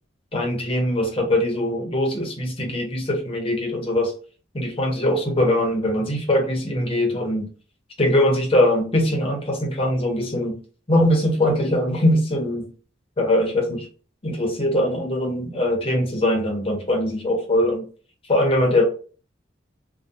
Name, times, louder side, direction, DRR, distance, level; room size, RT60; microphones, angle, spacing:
voice 1, 0.3-4.1 4.5-7.5 8.0-10.6 10.9-12.7 13.2-13.9 14.2-17.8 18.3-18.8, left 1 dB, 30° left, 1 dB, 0.7 m, -21 dB
2.6 x 2.2 x 2.2 m, 0.39 s
head